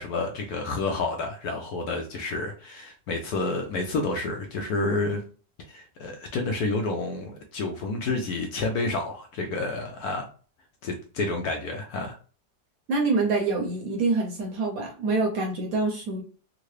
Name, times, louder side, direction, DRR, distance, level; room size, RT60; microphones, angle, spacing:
voice 1, 0.0-5.2 5.7-10.3 10.8-12.2, left 3 dB, 70° left, 3 dB, 1.0 m, -29 dB
voice 2, 12.9-16.2, right 3 dB, 60° right, 0 dB, 1.0 m, -26 dB
3.7 x 2.1 x 3.1 m, 0.38 s
omnidirectional pair, 2.0 m